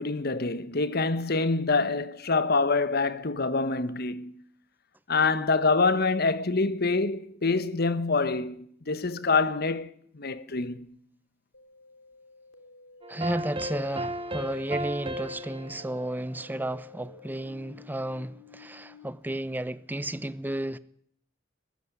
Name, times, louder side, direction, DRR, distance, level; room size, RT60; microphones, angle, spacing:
voice 1, 0.0-4.4 5.1-10.9, left 3 dB, 50° left, 1.2 m, -26 dB
sound 1, 11.5-19.1, left 2 dB, 75° left, 3.1 m, -52 dB
sound 2, 13.0-17.2, equal, 25° right, 1.1 m, -36 dB
voice 2, 13.1-20.8, right 1 dB, 10° right, 0.8 m, -33 dB
22.0 x 15.0 x 9.8 m
head